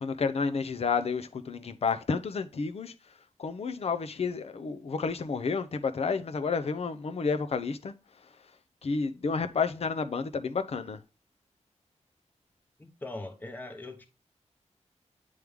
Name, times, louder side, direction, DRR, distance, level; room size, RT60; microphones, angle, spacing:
voice 1, 0.0-2.9 3.4-7.9 8.8-11.0, left 5 dB, 55° left, 0.7 m, -30 dB
voice 2, 12.8-14.0, left 2 dB, 15° left, 0.8 m, -41 dB
9.3 x 3.2 x 3.5 m
wide cardioid pair, 120°, 12 cm